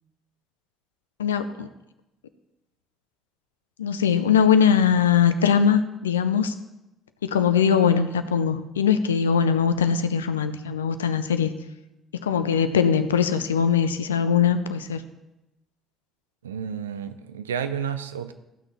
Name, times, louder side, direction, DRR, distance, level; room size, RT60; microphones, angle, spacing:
voice 1, 1.2-1.7 3.8-6.5 7.2-11.5 12.2-15.0, left 7 dB, 85° left, 10 dB, 0.4 m, -21 dB
voice 2, 16.4-18.3, right 7 dB, 85° right, 10 dB, 0.5 m, -31 dB
14.5 x 6.1 x 4.2 m, 0.92 s
figure-of-eight pair, 50°, 0 cm